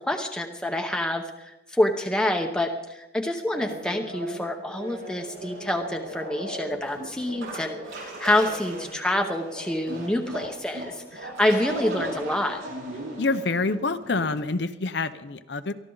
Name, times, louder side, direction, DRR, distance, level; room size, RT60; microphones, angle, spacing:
voice 1, 0.1-12.6, left 1 dB, 5° left, 2 dB, 0.8 m, -27 dB
sound 1, 3.6-14.3, right 1 dB, 80° right, 7.8 m, -37 dB
voice 2, 13.2-15.7, left 3 dB, 60° left, 11 dB, 0.7 m, -27 dB
23.5 x 14.5 x 3.9 m, 1.0 s
head